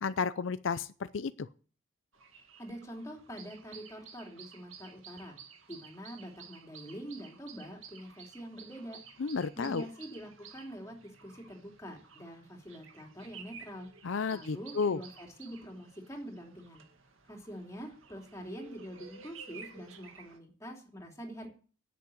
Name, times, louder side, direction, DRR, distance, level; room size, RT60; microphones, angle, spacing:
voice 1, 0.0-1.5 9.2-9.8 14.0-15.0, left 5 dB, 75° left, 0.5 m, -32 dB
sound 1, 2.1-20.4, right 6 dB, 90° right, 2.1 m, -53 dB
voice 2, 2.6-5.3 5.7-9.0 9.6-13.9 14.3-16.8 17.3-21.5, equal, 15° left, 3.1 m, -45 dB
10.5 x 8.5 x 7.7 m
head